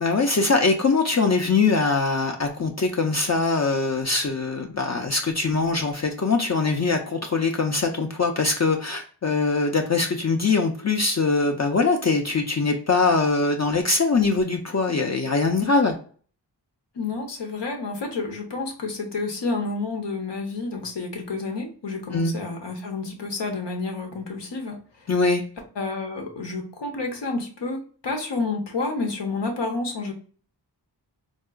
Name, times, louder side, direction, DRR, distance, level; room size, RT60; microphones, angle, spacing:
voice 1, 0.0-15.9 22.1-22.3 25.1-25.4, left 4 dB, 40° left, 3 dB, 0.4 m, -22 dB
voice 2, 16.9-25.1 25.8-30.1, left 3 dB, 85° left, 2 dB, 0.7 m, -30 dB
3.6 x 2.3 x 2.3 m, 0.43 s
wide cardioid pair, 65°, 42 cm